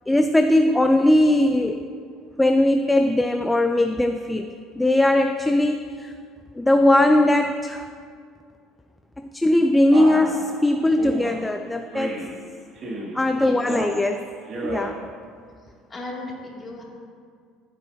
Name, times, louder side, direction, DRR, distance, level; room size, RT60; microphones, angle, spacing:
voice 1, 0.1-1.8 2.4-4.5 4.8-6.1 6.6-7.9 9.2-12.3 13.1-14.3 14.6-15.0, left 1 dB, 10° left, 6 dB, 0.4 m, -19 dB
Male speech man speaking, 9.9-10.4 11.0-11.4 11.9-12.3 12.7-13.2 13.6-14.0 14.4-14.9, right 1 dB, 45° right, 2.2 m, -32 dB
voice 2, 13.3-13.6 15.9-16.8, left 2 dB, 25° left, -3 dB, 2.5 m, -36 dB
15.0 x 8.1 x 2.7 m, 2.2 s
supercardioid pair, 100°, 0 cm